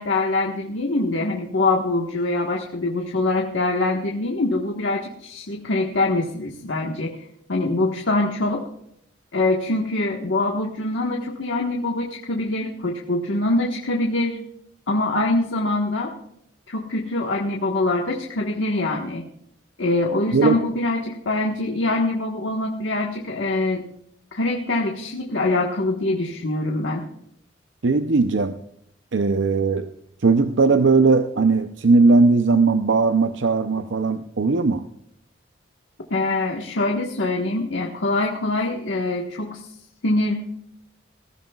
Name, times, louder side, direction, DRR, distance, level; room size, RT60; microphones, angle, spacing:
voice 1, 0.0-7.2 7.5-8.6 9.3-14.4 14.9-16.1 16.7-19.3 19.8-23.8 24.3-27.1 36.1-39.6 40.0-40.3, left 2 dB, 80° left, 0 dB, 1.4 m, -24 dB
voice 2, 27.8-28.6 29.1-29.9 30.2-34.8, right 3 dB, 80° right, 8 dB, 0.6 m, -18 dB
21.5 x 14.5 x 2.4 m, 0.75 s
head